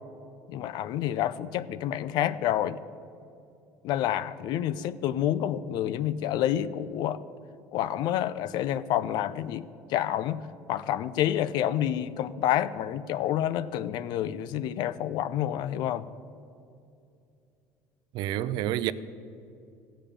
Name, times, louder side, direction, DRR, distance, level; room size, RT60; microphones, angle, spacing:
voice 1, 0.5-2.8 3.8-7.2 7.7-16.1, left 11 dB, 65° left, 0.5 m, -28 dB
voice 2, 18.1-18.9, right 13 dB, 65° right, 0.5 m, -28 dB
15.0 x 5.2 x 8.7 m
supercardioid pair, 95°, 8 cm